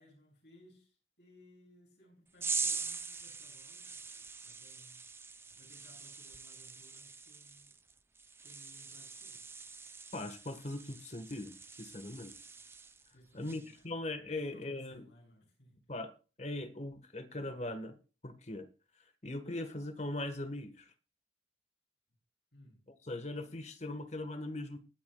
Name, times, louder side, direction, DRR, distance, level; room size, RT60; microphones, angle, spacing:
voice 1, 0.0-7.8 8.4-9.5 13.1-13.9 14.3-15.9 22.5-23.0, left 1 dB, 65° left, 7.3 m, -62 dB
sound 1, 2.4-13.1 13.4-13.8, right 4 dB, 15° right, 0.6 m, -43 dB
voice 2, 10.1-11.5 11.8-12.3 13.3-15.0 15.9-16.1 16.4-17.9 18.2-18.7 19.2-20.9 23.1-24.8, left 2 dB, 35° left, 1.4 m, -40 dB
20.5 x 9.6 x 2.3 m
head